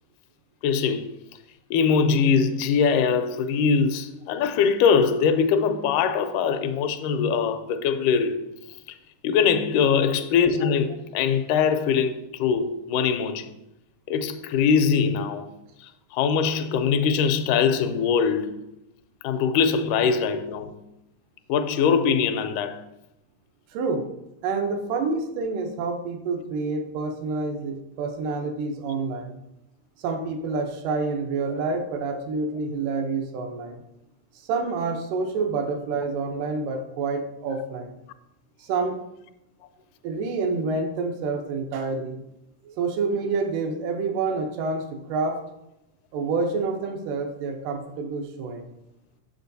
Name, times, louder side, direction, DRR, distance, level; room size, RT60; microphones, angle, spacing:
voice 1, 0.6-1.2 1.7-8.4 8.9-9.0 9.2-13.5 14.1-15.5 15.8-18.6 19.2-20.7 21.5-22.8, left 6 dB, 85° left, 2.1 m, -22 dB
voice 2, 23.7-24.1 24.4-29.4 30.0-33.8 34.4-38.0 38.6-39.0 40.0-42.2 42.6-45.4 46.1-48.7, right 4 dB, 85° right, 2.4 m, -28 dB
7.3 x 6.8 x 2.7 m
omnidirectional pair, 3.7 m